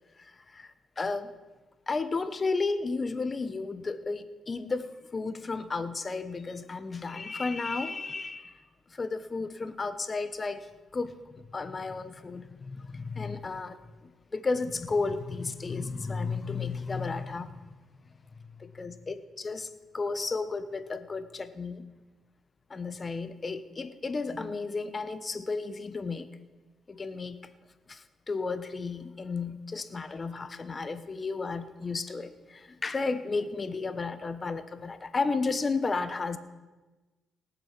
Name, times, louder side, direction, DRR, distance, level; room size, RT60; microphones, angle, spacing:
voice 1, 0.2-1.3 1.9-8.6 8.9-10.7 10.9-13.8 14.3-17.8 18.8-19.7 19.9-21.9 22.7-26.3 26.9-27.4 27.9-36.4, left 4 dB, 30° left, 12 dB, 0.9 m, -33 dB
18.5 x 6.9 x 5.9 m, 1.2 s
cardioid pair, 90°, 0 cm